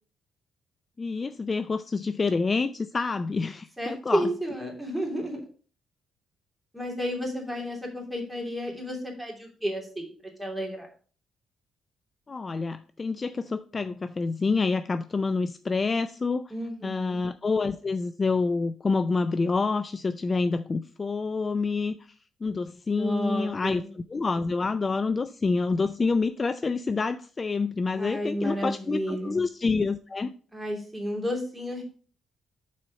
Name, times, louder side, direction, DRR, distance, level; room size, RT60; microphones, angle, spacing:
voice 1, 1.0-4.3 12.3-16.4 16.8-22.0 22.4-30.3, left 4 dB, 30° left, 12 dB, 0.4 m, -27 dB
voice 2, 3.8-5.4 6.7-10.1 10.4-10.9 16.5-17.2 23.0-23.9 27.9-29.4 30.5-31.8, equal, 5° right, 0 dB, 2.8 m, -31 dB
6.2 x 4.3 x 6.3 m, 0.41 s
cardioid pair, 90°, 0 cm